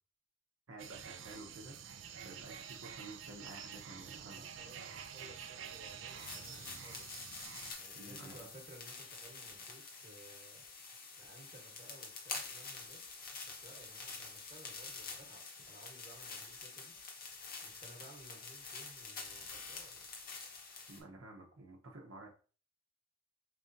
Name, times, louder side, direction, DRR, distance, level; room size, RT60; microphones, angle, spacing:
voice 1, 0.7-1.8 2.2-4.4 7.9-8.5 20.9-22.3, right 2 dB, 85° right, -1 dB, 0.8 m, -51 dB
sound 1, 0.8-7.7, right 7 dB, 65° right, 0.5 m, -48 dB
voice 2, 4.1-7.3 7.8-10.6 11.2-13.0 13.5-16.9 17.6-20.1, right 1 dB, 35° right, -1 dB, 1.2 m, -58 dB
sound 2, 6.2-21.0, left 4 dB, 45° left, 1.0 m, -47 dB
5.0 x 3.3 x 2.6 m, 0.37 s
head